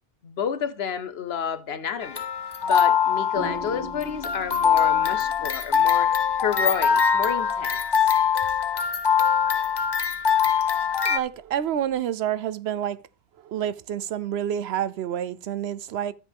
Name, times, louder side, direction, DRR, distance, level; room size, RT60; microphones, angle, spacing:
voice 1, 0.2-2.2 2.6-6.1 6.4-7.8, left 7 dB, 80° left, 1.1 m, -30 dB
sound 1, 2.0-11.2, left 7 dB, 35° left, 0.4 m, -23 dB
sound 2, 3.3-11.9, equal, 30° right, 3.1 m, -44 dB
voice 2, 11.0-13.0 13.4-16.1, right 10 dB, 85° right, 0.9 m, -28 dB
12.5 x 7.3 x 3.5 m
omnidirectional pair, 1.0 m